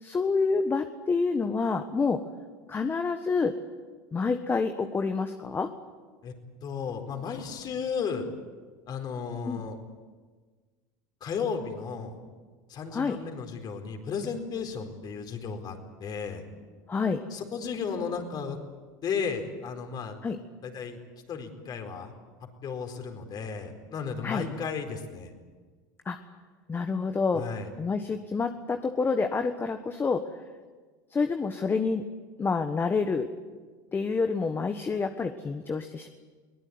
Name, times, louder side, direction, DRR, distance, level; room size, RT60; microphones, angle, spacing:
voice 1, 0.0-2.2 2.7-3.5 4.1-5.7 9.5-9.6 12.9-13.2 16.9-17.2 20.2-20.4 24.2-24.4 26.0-26.2 26.7-27.4 27.8-30.3 31.1-32.0 32.4-33.3 33.9-36.1, left 4 dB, 20° left, 7 dB, 1.3 m, -28 dB
voice 2, 6.6-8.3 8.9-9.8 11.2-12.2 12.7-16.4 17.3-18.6 19.0-20.2 20.6-21.0 21.3-22.1 22.6-25.3 27.3-27.7, left 6 dB, 40° left, 5 dB, 4.5 m, -34 dB
23.0 x 18.5 x 9.7 m, 1.4 s
supercardioid pair, 105°, 10 cm